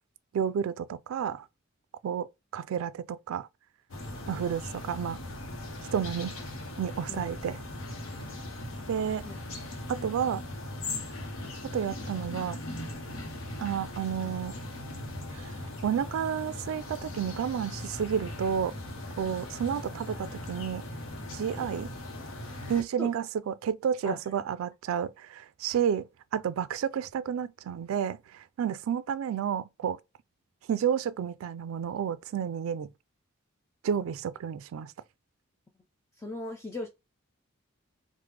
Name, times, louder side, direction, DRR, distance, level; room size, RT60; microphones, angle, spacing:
voice 1, 0.3-1.5 2.0-2.3 2.5-3.5 4.3-5.2 5.9-6.4 6.8-7.6 8.9-9.2 9.9-10.4 11.7-12.6 13.6-14.5 15.3-15.5 15.8-18.7 19.2-20.8 21.3-21.9 22.7-26.1 26.3-30.0 30.7-32.9 33.8-34.9, right 8 dB, 85° right, 0.3 m, -31 dB
sound 1, 3.9-22.8, left 1 dB, 90° left, 0.8 m, -39 dB
voice 2, 36.2-36.9, left 2 dB, 15° left, 0.3 m, -38 dB
3.3 x 2.1 x 3.2 m
head